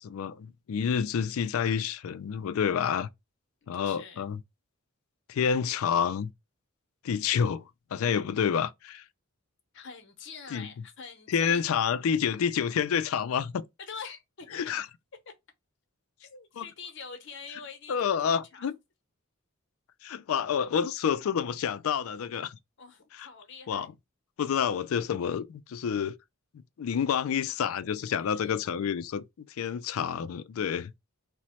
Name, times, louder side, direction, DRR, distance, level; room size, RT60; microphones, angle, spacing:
voice 1, 0.0-3.1 3.7-4.4 5.3-6.3 7.0-9.0 10.5-10.7 11.3-13.6 14.5-14.9 16.6-16.7 17.9-18.7 20.0-22.6 23.1-23.3 23.7-23.9 24.4-26.1 26.8-30.9, left 7 dB, 70° left, 0.3 m, -29 dB
voice 2, 3.6-4.2 9.7-11.6 13.8-14.6 15.3-15.4 16.2-18.7 22.8-23.9 28.2-28.6, left 5 dB, 55° left, 0.8 m, -45 dB
2.9 x 2.1 x 4.1 m
head